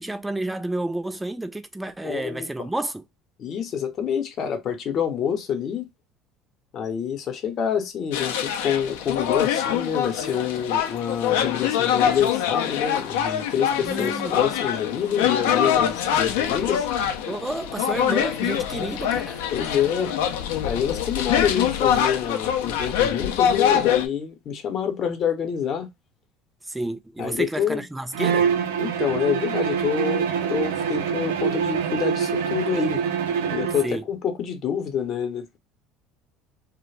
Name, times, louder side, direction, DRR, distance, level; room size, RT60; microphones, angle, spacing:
voice 1, 0.0-3.0 13.8-14.5 17.3-19.5 26.6-28.5 33.8-34.1, right 2 dB, 10° right, 0.4 m, -30 dB
voice 2, 2.0-2.5 3.4-5.9 6.7-16.9 19.5-20.1 20.6-25.9 27.2-27.8 28.8-33.0 33.5-35.6, left 8 dB, 50° left, 0.7 m, -27 dB
sound 1, 8.1-24.1, left 9 dB, 80° left, 0.4 m, -24 dB
Bowed string instrument, 28.1-34.0, right 7 dB, 85° right, 0.4 m, -25 dB
2.3 x 2.0 x 3.2 m
hypercardioid pair, 75°, 0 cm